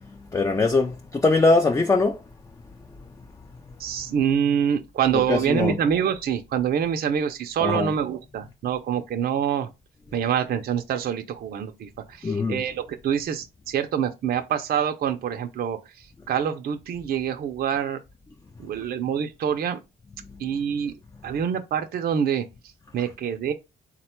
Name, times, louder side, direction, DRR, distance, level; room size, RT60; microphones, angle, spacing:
voice 1, 0.3-2.2 5.3-5.8 7.6-7.9 12.2-12.6, left 3 dB, 15° left, 0.3 m, -21 dB
voice 2, 3.8-9.7 10.1-18.0 18.6-19.8 20.4-20.9 21.2-22.4 22.9-23.5, right 8 dB, 50° right, 0.4 m, -26 dB
3.6 x 2.2 x 4.3 m
cardioid pair, 90°, 20 cm